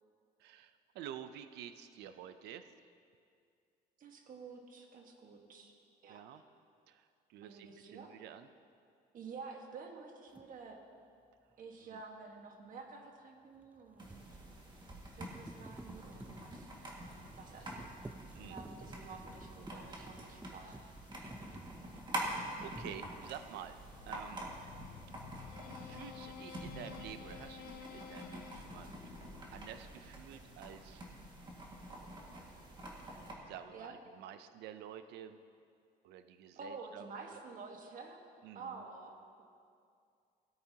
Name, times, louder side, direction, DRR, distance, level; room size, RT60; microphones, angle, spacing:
voice 1, 0.4-2.7 6.1-6.4 6.9-8.5 11.8-12.0 18.3-18.6 21.7-21.9 22.6-23.8 24.1-24.5 25.8-29.1 29.5-31.0 33.0-35.4 36.0-37.1 37.3-37.4 38.4-38.8, right 10 dB, 80° right, 10 dB, 0.5 m, -50 dB
voice 2, 4.0-5.7 6.0-6.4 7.4-8.1 9.1-10.8 11.6-14.2 15.2-16.7 17.4-17.9 18.4-20.8 33.7-33.9 36.6-38.2 38.5-39.4, right 4 dB, 55° right, 2 dB, 1.5 m, -50 dB
sound 1, 10.3-10.5 13.6-22.3 22.7-23.5, right 2 dB, 10° right, 0.5 m, -53 dB
sound 2, 14.0-33.3, right 1 dB, 25° right, 1.9 m, -47 dB
sound 3, 23.9-30.2, left 9 dB, 65° left, 0.6 m, -52 dB
17.5 x 8.6 x 2.8 m, 2.3 s
cardioid pair, 110°, 17 cm